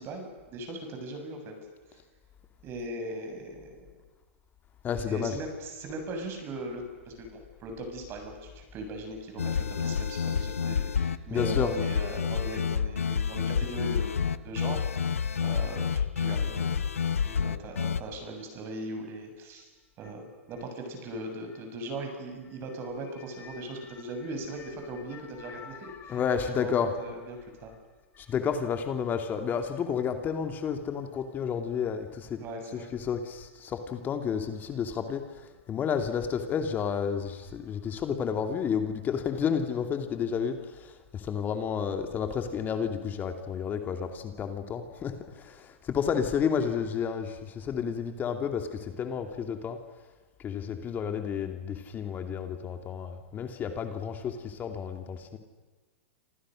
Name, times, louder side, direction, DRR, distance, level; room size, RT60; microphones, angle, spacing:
voice 1, 0.0-1.5 2.6-3.8 5.1-16.8 17.2-19.7 20.0-26.2 26.6-27.7 32.4-32.9, right 1 dB, 35° right, 4 dB, 7.4 m, -39 dB
voice 2, 4.8-5.4 11.3-11.8 23.2-27.1 28.1-49.8 50.4-55.4, left 7 dB, 25° left, 6 dB, 2.7 m, -31 dB
sound 1, 9.4-18.0, left 6 dB, 85° left, 1.2 m, -29 dB
29.0 x 27.0 x 6.5 m, 1.3 s
hypercardioid pair, 115°, 7 cm